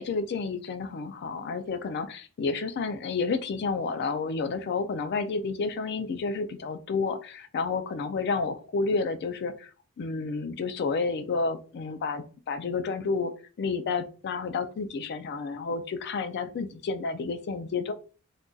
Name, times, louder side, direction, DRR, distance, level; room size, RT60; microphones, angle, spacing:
voice 1, 0.0-9.7 10.0-13.3 13.6-17.9, left 4 dB, 50° left, 9 dB, 0.4 m, -30 dB
3.7 x 2.6 x 2.3 m, 0.36 s
head